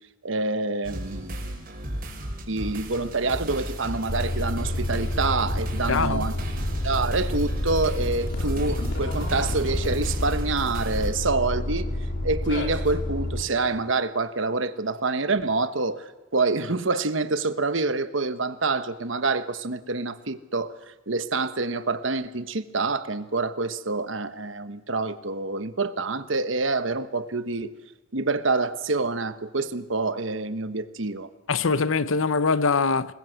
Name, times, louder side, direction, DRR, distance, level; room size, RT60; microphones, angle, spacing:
voice 1, 0.2-1.5 2.5-6.3 6.8-11.9 12.2-20.7 21.1-27.7 28.1-31.3, right 3 dB, 70° right, 1.2 m, -27 dB
sound 1, 0.8-11.1, right 1 dB, 45° right, 5.8 m, -35 dB
sound 2, 4.1-13.4, left 1 dB, 65° left, 3.5 m, -29 dB
voice 2, 5.9-6.3 31.5-33.1, left 4 dB, 85° left, 0.8 m, -23 dB
26.0 x 21.0 x 8.1 m
head